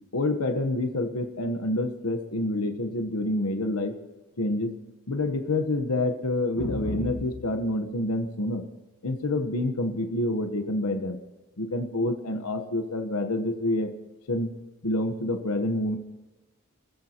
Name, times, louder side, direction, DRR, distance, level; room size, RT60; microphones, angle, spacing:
voice 1, 0.1-4.0 4.4-4.7 5.1-8.6 9.0-11.2 11.6-13.9 14.3-14.5 14.8-16.0, left 1 dB, 85° left, 6 dB, 1.1 m, -27 dB
26.5 x 14.5 x 3.0 m, 1.1 s
head